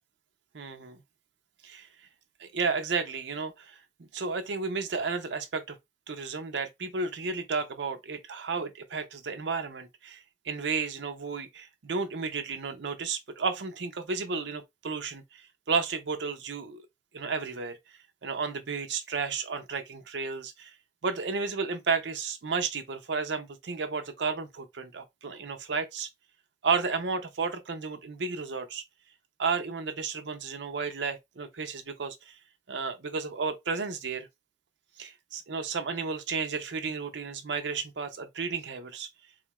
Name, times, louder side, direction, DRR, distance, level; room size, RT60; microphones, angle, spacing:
voice 1, 0.5-1.0 1.6-1.9 2.4-5.8 6.1-16.8 17.1-17.8 18.2-20.7 21.0-26.1 26.6-28.8 29.4-32.4 32.7-34.3 35.0-39.1, right 4 dB, 75° right, 0.6 m, -32 dB
3.7 x 2.3 x 3.0 m
head